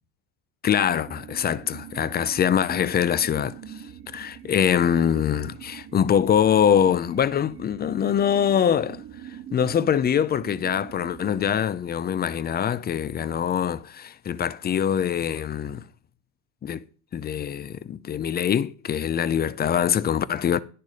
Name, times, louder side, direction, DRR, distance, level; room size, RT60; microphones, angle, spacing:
voice 1, 0.6-3.5 4.1-9.0 9.5-15.9 16.6-16.8 17.1-20.6, left 8 dB, 25° left, 0.4 m, -23 dB
sound 1, 0.8-11.5, right 10 dB, 30° right, 0.6 m, -43 dB
10.0 x 6.8 x 4.9 m
supercardioid pair, 100°, 45 cm